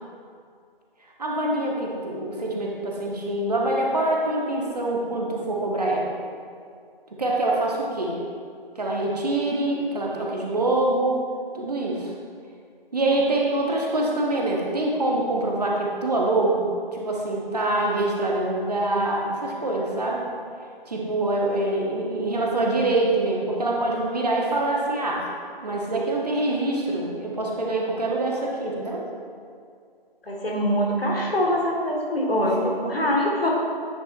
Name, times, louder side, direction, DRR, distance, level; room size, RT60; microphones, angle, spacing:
voice 1, 1.2-6.1 7.2-8.2 8.8-11.1 11.5-12.1 12.9-20.2 20.9-25.2 25.6-29.0, right 2 dB, 45° right, -2 dB, 1.0 m, -25 dB
voice 2, 30.3-33.5, equal, 80° left, -2 dB, 1.7 m, -23 dB
9.4 x 5.7 x 2.5 m, 2.2 s
figure-of-eight pair, 155°, 29 cm